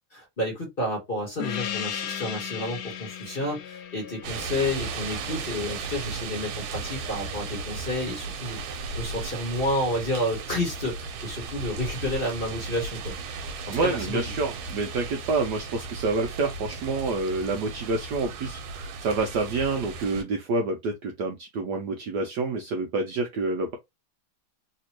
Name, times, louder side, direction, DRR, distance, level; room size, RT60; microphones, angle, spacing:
voice 1, 0.1-13.1 13.7-14.2, left 1 dB, 30° left, 1.2 m, -30 dB
Gong, 1.4-6.4, left 9 dB, 70° left, 1.0 m, -36 dB
sound 1, 4.2-20.2, right 4 dB, 90° right, 1.6 m, -35 dB
voice 2, 13.7-23.8, right 3 dB, 70° right, 1.0 m, -28 dB
3.3 x 2.9 x 2.9 m
omnidirectional pair, 2.3 m